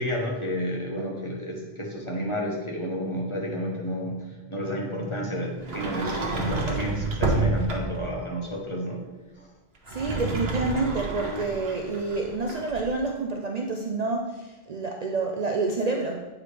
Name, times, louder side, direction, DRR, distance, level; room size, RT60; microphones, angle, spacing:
voice 1, 0.0-9.0 9.4-9.5, equal, 30° left, -2 dB, 1.1 m, -31 dB
Sliding door, 5.6-8.1 9.7-12.9, right 2 dB, 75° right, 1.2 m, -29 dB
voice 2, 9.9-16.3, right 3 dB, 50° right, 1 dB, 0.6 m, -28 dB
8.5 x 4.8 x 3.3 m, 1.2 s
omnidirectional pair, 1.1 m